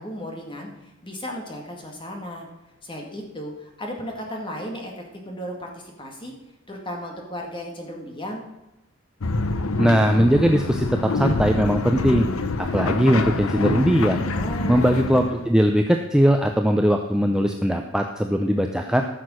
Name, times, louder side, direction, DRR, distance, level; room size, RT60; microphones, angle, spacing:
voice 1, 0.0-2.5 2.8-6.3 6.7-8.4 14.3-14.9, equal, 25° left, 1 dB, 2.0 m, -35 dB
sound 1, 9.2-15.5, left 3 dB, 85° left, 0.8 m, -26 dB
voice 2, 9.8-12.3 12.6-14.2 14.7-19.0, equal, 5° right, 3 dB, 0.5 m, -20 dB
13.5 x 6.6 x 6.3 m, 0.97 s
head